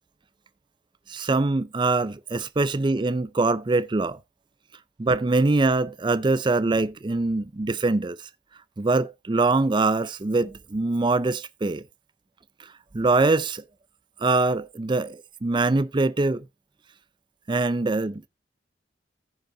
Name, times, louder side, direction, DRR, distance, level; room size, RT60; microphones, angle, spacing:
voice 1, 1.1-4.2 5.0-8.3 8.8-11.8 12.9-13.6 14.2-16.4 17.5-18.3, right 3 dB, 25° right, 0.4 m, -23 dB
15.0 x 5.4 x 3.7 m
head